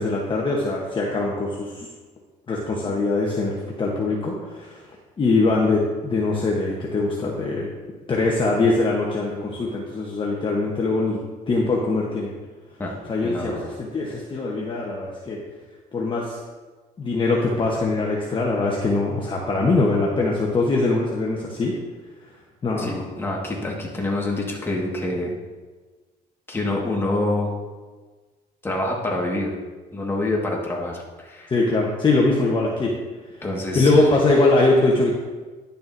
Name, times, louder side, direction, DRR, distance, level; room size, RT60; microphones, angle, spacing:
voice 1, 0.0-1.9 2.5-4.8 5.2-7.7 8.1-11.2 11.5-12.3 13.1-15.4 15.9-16.4 17.0-21.7 22.6-23.0 31.5-32.9 33.7-35.1, left 3 dB, 30° left, -2 dB, 1.0 m, -22 dB
voice 2, 13.2-13.7 22.8-25.4 26.5-27.5 28.6-29.5 29.9-31.5 33.4-33.9, left 2 dB, 15° left, -2 dB, 1.7 m, -26 dB
10.5 x 6.8 x 2.6 m, 1.3 s
cardioid pair, 110°, 17 cm